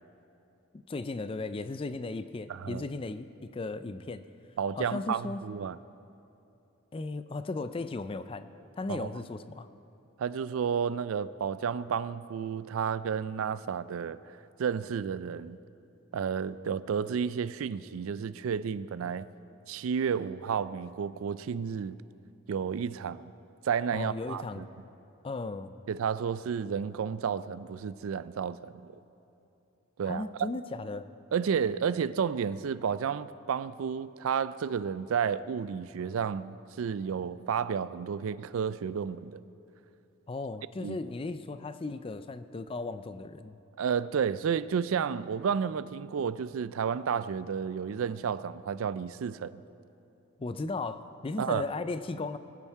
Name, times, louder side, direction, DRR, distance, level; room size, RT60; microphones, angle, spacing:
voice 1, 0.9-4.2 4.8-5.4 6.9-8.5 8.8-9.7 23.9-24.6 25.2-25.8 30.0-31.1 40.3-43.6 50.4-52.4, left 3 dB, 25° left, 0.3 m, -36 dB
voice 2, 2.5-2.9 4.6-5.8 8.9-9.1 10.2-14.2 14.6-15.6 16.1-19.3 19.7-22.0 22.5-23.3 23.6-24.7 25.9-28.9 30.0-30.5 31.3-39.4 40.8-41.0 43.8-49.6 51.4-51.6, right 7 dB, 75° right, 0.4 m, -31 dB
20.5 x 9.0 x 4.7 m
head